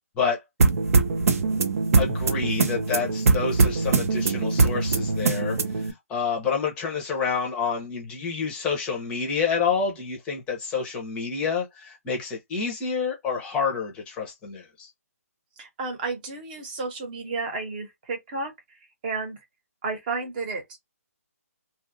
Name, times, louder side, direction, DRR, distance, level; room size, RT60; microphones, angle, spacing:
sound 1, 0.6-5.9, right 4 dB, 65° right, 0.7 m, -22 dB
voice 1, 2.0-14.9, left 5 dB, 15° left, 0.7 m, -28 dB
voice 2, 15.6-19.4 19.8-20.6, right 4 dB, 35° right, 1.0 m, -32 dB
2.7 x 2.5 x 2.5 m
hypercardioid pair, 155°, 8 cm